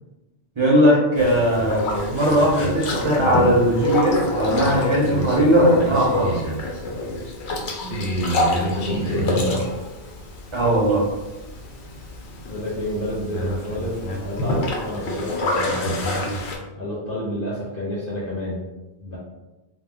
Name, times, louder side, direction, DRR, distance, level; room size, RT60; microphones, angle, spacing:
voice 1, 0.6-1.9 2.1-6.4 10.5-11.0, equal, 40° right, -4 dB, 0.4 m, -18 dB
Boat Water vehicle, 1.2-16.6, left 1 dB, 90° left, 0.9 m, -27 dB
voice 2, 8.2-9.7 10.6-10.7 12.5-16.1 16.8-18.6 19.0-19.2, left 1 dB, 60° left, -6 dB, 0.8 m, -29 dB
2.1 x 2.1 x 3.5 m, 1.1 s
omnidirectional pair, 1.1 m